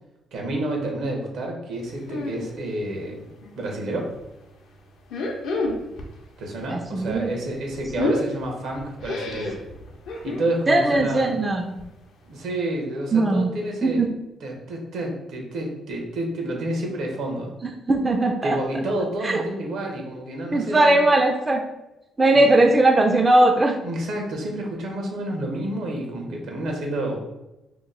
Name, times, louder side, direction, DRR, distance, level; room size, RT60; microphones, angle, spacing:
voice 1, 0.3-3.3 3.6-4.1 6.4-9.6 10.2-11.3 12.3-14.0 14.4-17.5 18.4-21.1 22.3-22.5 23.8-27.2, right 1 dB, 80° right, 1 dB, 0.9 m, -29 dB
sound 1, 2.1-2.5 2.8-3.6 4.0-4.2 5.0-6.2 6.4-10.5 10.9-11.2 11.5-11.6 11.8-11.9 12.4-12.5, left 2 dB, 80° left, 0.5 m, -30 dB
voice 2, 6.7-7.3 10.7-11.8 13.1-13.5 13.8-14.1 17.6-18.6 19.2-19.4 20.5-21.6 22.2-23.8, right 2 dB, 25° right, 4 dB, 0.3 m, -19 dB
2.9 x 2.0 x 3.8 m, 0.95 s
cardioid pair, 90°, 0 cm